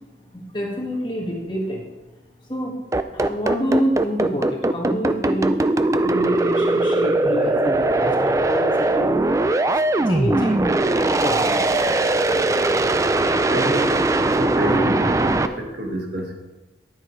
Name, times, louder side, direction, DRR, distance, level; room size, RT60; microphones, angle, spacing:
voice 1, 0.3-1.9 2.4-2.8 3.1-5.6 6.0-9.1 10.1-10.7 11.2-11.7, equal, 25° left, -2 dB, 1.8 m, -27 dB
sound 1, 2.9-15.5, right 2 dB, 15° right, 0.3 m, -20 dB
voice 2, 13.5-16.3, right 1 dB, 65° right, 2 dB, 1.5 m, -28 dB
10.5 x 9.6 x 3.2 m, 1.1 s
head